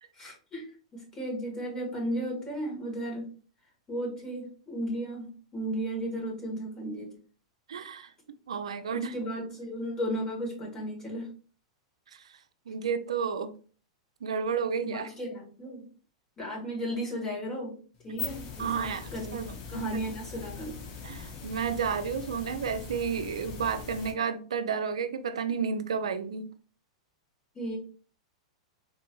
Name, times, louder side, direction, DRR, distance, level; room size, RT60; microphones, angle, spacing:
voice 1, 0.1-0.7 0.9-3.3 3.9-7.1 8.9-11.3 14.8-15.8 16.4-17.8 18.0-19.4 19.7-20.8 27.5-27.8, equal, 20° left, 1.8 m, -35 dB
voice 2, 7.7-8.1 8.5-9.1 12.1-12.2 12.7-13.5 14.2-15.1 18.6-19.9 21.0-26.5, right 6 dB, 90° right, 0.4 m, -31 dB
sound 1, 17.9-24.1, left 5 dB, 45° left, 1.0 m, -41 dB
3.7 x 2.5 x 3.0 m
hypercardioid pair, 120°, 3 cm